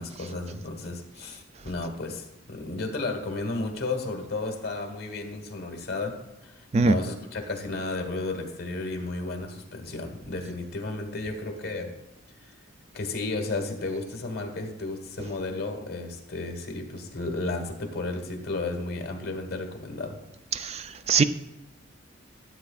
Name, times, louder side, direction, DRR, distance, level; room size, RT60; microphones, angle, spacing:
voice 1, 0.0-6.2 6.4-11.9 12.4-12.5 12.9-20.2, left 2 dB, 50° left, 3 dB, 1.4 m, -33 dB
voice 2, 6.7-7.0 20.6-20.8 21.1-21.2, right 4 dB, 30° right, 12 dB, 0.3 m, -21 dB
13.0 x 7.8 x 2.4 m, 0.98 s
head